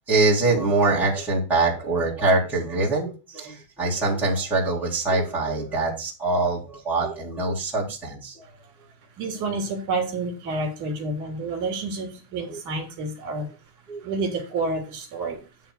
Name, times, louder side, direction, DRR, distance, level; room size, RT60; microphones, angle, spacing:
voice 1, 0.1-8.5 12.5-12.6 13.9-14.0, right 3 dB, 5° right, -8 dB, 2.5 m, -24 dB
voice 2, 9.2-13.5 14.0-15.4, right 3 dB, 40° right, 3 dB, 2.9 m, -29 dB
9.7 x 3.6 x 6.1 m, 0.32 s
cardioid pair, 175°, 47 cm